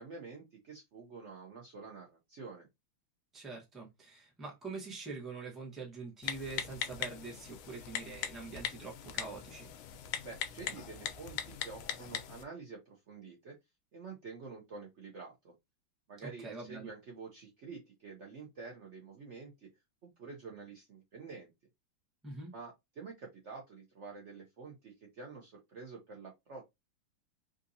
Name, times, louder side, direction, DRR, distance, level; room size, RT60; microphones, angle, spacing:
voice 1, 0.0-2.7 10.2-13.5 13.9-15.5 16.1-19.7 20.0-21.5 22.5-26.7, right 4 dB, 90° right, 0.6 m, -48 dB
voice 2, 3.3-9.7 16.2-16.9 22.2-22.5, right 3 dB, ahead, 0.5 m, -44 dB
Typing, 6.2-12.4, left 9 dB, 85° left, 1.4 m, -40 dB
3.6 x 2.6 x 2.6 m
omnidirectional pair, 2.2 m